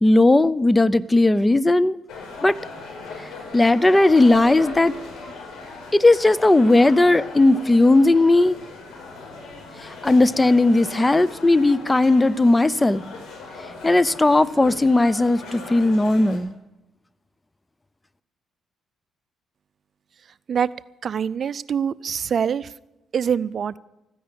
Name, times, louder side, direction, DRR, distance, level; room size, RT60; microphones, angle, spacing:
voice 1, 0.0-1.9 2.4-2.6 3.5-4.9 5.9-8.6 9.8-13.0 13.8-16.5, left 2 dB, 15° left, 19 dB, 0.6 m, -17 dB
sound 1, 2.1-16.4, left 3 dB, 75° left, 5.2 m, -38 dB
voice 2, 21.0-22.7 23.1-23.8, right 7 dB, 50° right, 18 dB, 0.5 m, -24 dB
14.5 x 10.0 x 8.6 m, 0.92 s
cardioid pair, 90°, 0 cm